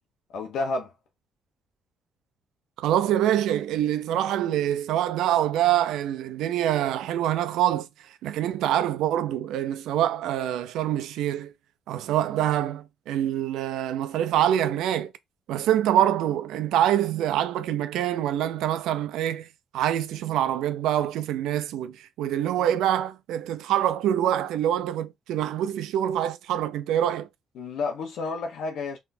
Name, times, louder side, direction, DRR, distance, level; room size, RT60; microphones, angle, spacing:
voice 1, 0.3-0.9 27.5-29.0, left 3 dB, 75° left, 1.0 m, -30 dB
voice 2, 2.8-7.9 8.2-11.5 11.9-15.1 15.5-19.5 19.7-27.3, right 11 dB, 90° right, 0.5 m, -25 dB
4.1 x 3.6 x 2.7 m
cardioid pair, 90°, 0 cm